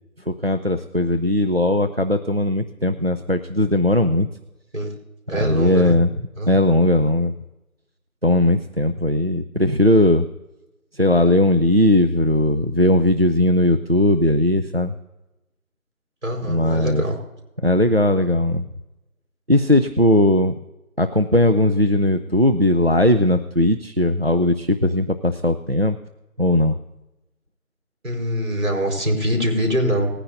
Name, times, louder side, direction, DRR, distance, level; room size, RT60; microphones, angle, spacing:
voice 1, 0.3-4.3 5.3-6.1 6.5-7.3 8.2-10.3 10.9-14.9 16.4-17.0 17.6-18.7 19.5-20.5 21.0-26.0 26.4-26.8, left 1 dB, 45° right, 8 dB, 0.5 m, -18 dB
voice 2, 5.3-5.9 6.4-6.7 16.2-17.2 28.0-30.1, equal, 60° right, 2 dB, 4.7 m, -23 dB
20.0 x 9.9 x 2.6 m, 0.98 s
figure-of-eight pair, 180°, 44 cm